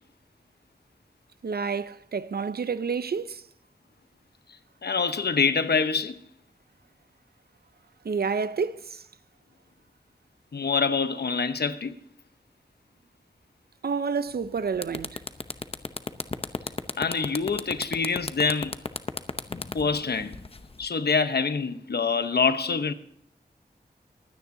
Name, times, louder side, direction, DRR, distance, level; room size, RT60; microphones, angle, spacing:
voice 1, 1.4-3.4 8.0-9.0 13.8-15.2, right 5 dB, 70° right, 0.6 m, -29 dB
voice 2, 4.8-6.2 10.5-11.9 17.0-18.7 19.7-20.3 20.8-22.9, left 5 dB, 75° left, 1.0 m, -25 dB
sound 1, 14.3-14.5 14.8-20.9, left 3 dB, 35° left, 0.7 m, -33 dB
23.5 x 9.5 x 2.7 m
wide cardioid pair, 70°, 17 cm